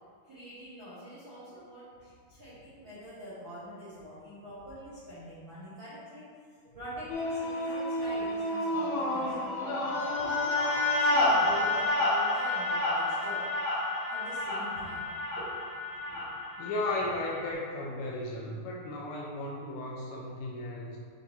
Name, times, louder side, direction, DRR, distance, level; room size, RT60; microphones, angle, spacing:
voice 1, 0.2-6.3 6.7-13.4 14.1-15.5 16.1-16.3 16.9-17.0, equal, 75° right, -13 dB, 1.1 m, -45 dB
sound 1, 7.1-17.5, left 2 dB, 65° left, 3.0 m, -30 dB
voice 2, 16.6-21.0, left 2 dB, 80° left, -3 dB, 2.8 m, -35 dB
9.4 x 3.7 x 4.2 m, 2.2 s
omnidirectional pair, 5.7 m